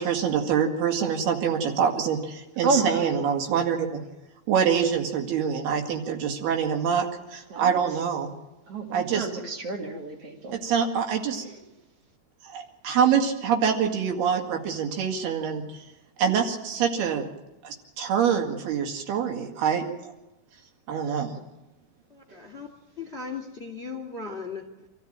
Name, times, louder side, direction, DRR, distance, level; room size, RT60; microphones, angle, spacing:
voice 1, 0.0-4.0 4.5-8.3 8.9-9.3 10.5-11.5 12.4-15.8 16.2-17.3 17.6-20.1 20.9-21.4, right 7 dB, 75° right, 3 dB, 4.1 m, -25 dB
voice 2, 2.6-3.2 7.5-7.8 8.7-10.6 11.4-11.6, right 3 dB, 40° right, 3 dB, 3.0 m, -29 dB
voice 3, 22.1-22.7 23.0-24.9, left 5 dB, 20° left, 3 dB, 2.2 m, -37 dB
27.0 x 14.5 x 8.9 m, 0.97 s
omnidirectional pair, 4.5 m